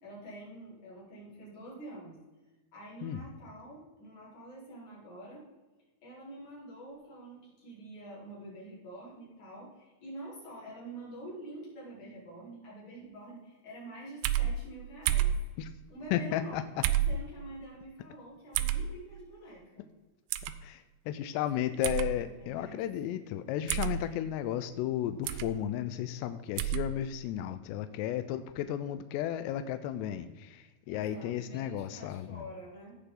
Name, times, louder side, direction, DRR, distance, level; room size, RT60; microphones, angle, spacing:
voice 1, 0.0-2.2 2.7-5.5 6.0-15.3 15.9-16.6 16.9-19.9 21.5-22.8 30.9-33.0, right 1 dB, 40° left, -6 dB, 5.2 m, -47 dB
sound 1, 14.2-14.5 15.1-15.4 16.8-17.1 18.6-18.8 20.3-20.5 21.8-22.1 23.7-24.0 25.3-25.5 26.6-26.8, right 14 dB, 85° right, 3.1 m, -28 dB
voice 2, 16.1-16.8 20.6-32.4, left 11 dB, 85° left, 11 dB, 2.4 m, -34 dB
16.5 x 6.7 x 3.9 m, 1.2 s
omnidirectional pair, 5.4 m